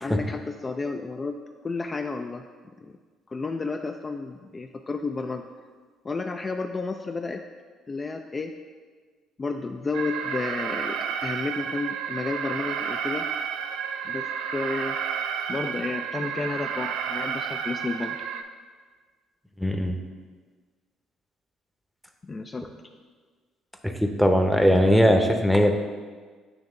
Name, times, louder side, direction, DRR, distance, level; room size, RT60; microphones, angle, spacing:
voice 1, 0.0-1.4 1.6-2.5 2.8-3.0 3.3-5.4 6.0-7.4 7.9-8.5 9.4-13.3 14.0-15.0 15.5-18.2 22.2-22.7, left 3 dB, 30° left, 4 dB, 0.3 m, -31 dB
Alarm, 9.9-18.4, right 7 dB, 80° right, 0.3 m, -31 dB
voice 2, 19.6-20.0 23.8-25.7, equal, ahead, 4 dB, 0.7 m, -20 dB
8.8 x 3.0 x 3.7 m, 1.5 s
supercardioid pair, 60°, 0 cm